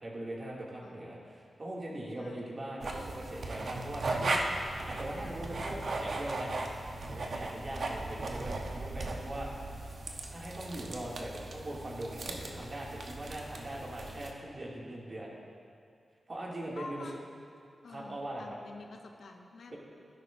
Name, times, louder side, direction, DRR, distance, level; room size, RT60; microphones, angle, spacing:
voice 1, 0.0-6.5 7.0-9.5 10.3-15.3 16.3-17.1 17.9-18.6, right 1 dB, 45° right, -4 dB, 2.3 m, -41 dB
voice 2, 0.8-1.3 2.2-2.5 16.7-17.2 17.8-19.7, left 3 dB, 80° left, 3 dB, 0.8 m, -48 dB
sound 1, 2.8-14.3, right 2 dB, 70° right, 0.9 m, -37 dB
12.5 x 10.5 x 2.6 m, 2.5 s
cardioid pair, 50°, 0 cm